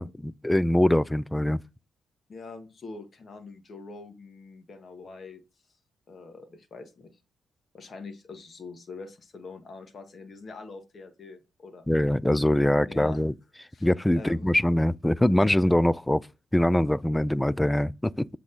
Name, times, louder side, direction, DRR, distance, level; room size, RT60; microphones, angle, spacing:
voice 1, 0.0-1.6 11.9-13.3 13.8-16.2 16.5-18.3, left 1 dB, 10° left, 0.3 m, -23 dB
voice 2, 2.3-5.4 6.1-7.1 7.7-11.9 12.8-13.2 13.7-13.9 14.1-14.5, left 3 dB, 45° left, 1.8 m, -44 dB
7.9 x 3.7 x 4.0 m
cardioid pair, 95°, 0 cm